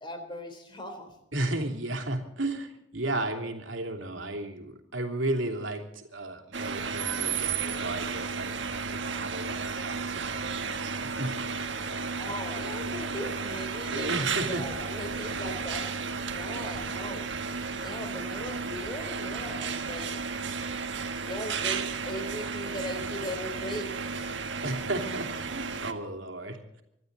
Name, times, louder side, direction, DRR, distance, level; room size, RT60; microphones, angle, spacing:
voice 1, 0.0-1.1 12.2-15.9 16.3-17.4 17.7-20.2 21.3-23.9, equal, 25° left, 5 dB, 3.7 m, -39 dB
voice 2, 1.3-11.3 11.6-11.8 13.9-14.6 16.5-16.7 24.6-26.8, right 2 dB, 85° right, 3 dB, 3.0 m, -34 dB
sound 1, 6.5-25.9, right 5 dB, 70° right, 1.6 m, -33 dB
25.5 x 12.5 x 4.0 m, 0.83 s
head